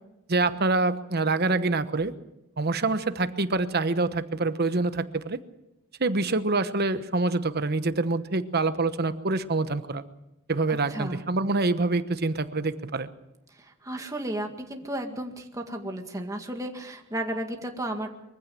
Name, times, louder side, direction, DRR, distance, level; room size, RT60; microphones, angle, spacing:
voice 1, 0.3-2.1 2.6-5.4 6.0-10.0 10.5-13.1, right 3 dB, 50° right, 11 dB, 1.1 m, -26 dB
voice 2, 10.7-11.2 13.5-18.1, right 1 dB, 15° right, 3 dB, 2.0 m, -34 dB
23.0 x 15.0 x 7.7 m, 0.92 s
head